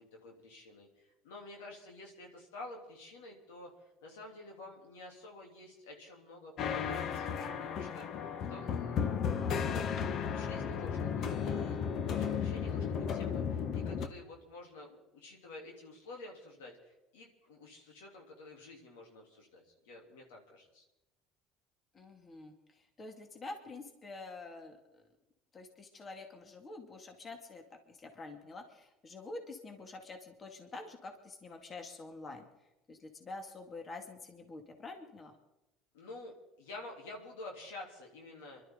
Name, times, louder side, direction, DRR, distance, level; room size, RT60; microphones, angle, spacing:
voice 1, 0.0-9.3 9.5-10.0 10.3-11.8 12.0-20.8 35.9-38.6, left 2 dB, 85° left, 0 dB, 3.3 m, -50 dB
sound 1, 6.6-14.1, left 7 dB, 55° left, 1.2 m, -34 dB
voice 2, 21.9-25.0 25.5-32.5 32.9-35.3, left 3 dB, 35° left, 4 dB, 2.2 m, -47 dB
25.0 x 12.5 x 3.9 m, 1.0 s
hypercardioid pair, 80°, 0 cm